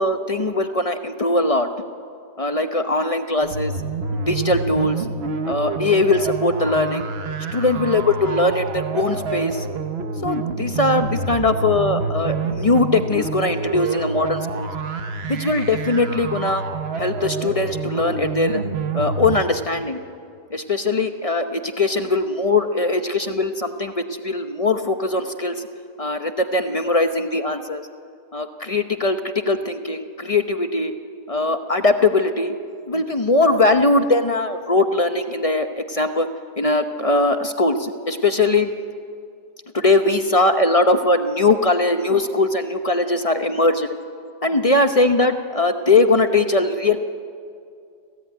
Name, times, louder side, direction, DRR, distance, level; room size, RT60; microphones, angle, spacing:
voice 1, 0.0-1.7 2.4-3.7 4.1-5.0 5.4-7.0 7.5-9.7 10.2-14.7 15.3-16.6 17.0-18.6 18.9-20.0 20.5-25.5 26.0-27.8 28.3-30.9 31.3-32.5 32.9-36.3 36.6-38.7 39.7-43.9 44.4-47.0, left 2 dB, 35° left, 7 dB, 0.5 m, -20 dB
sound 1, 3.4-19.4, right 4 dB, 45° right, 1.0 m, -28 dB
25.5 x 16.5 x 9.3 m, 2.3 s
omnidirectional pair, 1.9 m